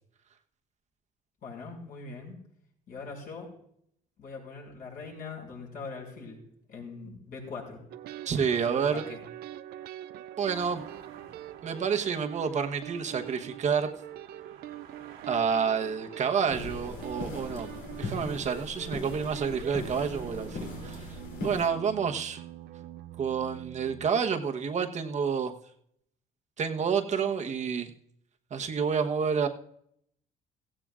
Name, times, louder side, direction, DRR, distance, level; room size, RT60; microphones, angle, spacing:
voice 1, 1.4-2.4 2.9-3.5 4.2-6.4 6.7-7.8 8.5-9.2, left 4 dB, 55° left, -2 dB, 6.3 m, -42 dB
sound 1, 7.9-24.1, right 13 dB, 65° right, 0.5 m, -44 dB
voice 2, 8.2-9.0 10.4-10.8 11.6-13.9 15.3-21.1 21.4-22.4 23.2-25.5 26.6-27.9 28.5-29.5, right 6 dB, 45° right, 5 dB, 1.1 m, -29 dB
sound 2, 10.5-21.0, right 7 dB, 85° right, 1.8 m, -53 dB
sound 3, 16.5-21.7, left 3 dB, 75° left, 3.0 m, -39 dB
16.5 x 16.0 x 2.5 m, 0.70 s
cardioid pair, 110°, 17 cm